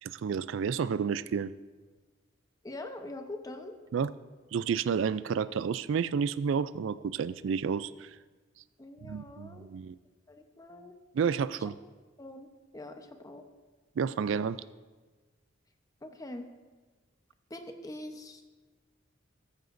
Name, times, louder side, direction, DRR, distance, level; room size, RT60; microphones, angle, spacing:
voice 1, 0.0-1.5 3.9-4.1 4.5-8.1 9.0-10.0 11.1-11.7 14.0-14.6, right 6 dB, 75° right, 16 dB, 0.3 m, -30 dB
voice 2, 2.6-3.7 8.8-9.7 10.3-10.9 12.2-12.5 12.7-13.4 16.0-16.5 17.5-18.4, left 1 dB, 20° left, 5 dB, 0.8 m, -43 dB
14.5 x 13.5 x 2.6 m, 1.3 s
head